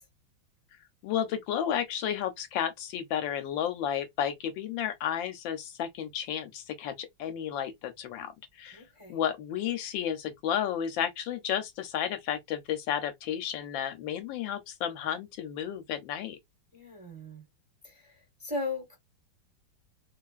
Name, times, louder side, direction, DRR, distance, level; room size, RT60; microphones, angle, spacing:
voice 1, 1.0-8.3 8.6-8.8 9.1-16.4, left 9 dB, 75° left, 1.2 m, -32 dB
voice 2, 8.7-9.2 16.7-17.4 17.8-18.0 18.4-18.9, left 3 dB, 25° right, 0.8 m, -37 dB
3.4 x 2.4 x 2.3 m
omnidirectional pair, 2.2 m